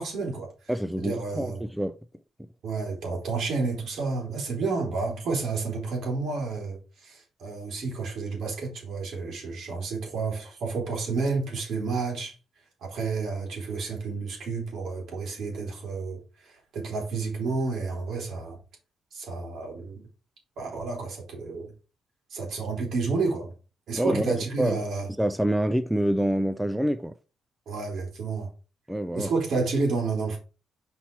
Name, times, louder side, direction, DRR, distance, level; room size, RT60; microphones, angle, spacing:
voice 1, 0.0-0.5 1.0-1.6 2.6-12.3 12.8-18.6 19.1-20.0 20.6-21.7 22.3-23.5 23.9-25.1 27.7-28.5 29.1-30.4, right 4 dB, 70° right, 3.3 m, -30 dB
voice 2, 0.7-1.9 23.9-24.8 25.2-27.1 28.9-29.3, right 1 dB, 5° right, 0.4 m, -26 dB
5.8 x 4.3 x 4.5 m
cardioid pair, 115°, 0 cm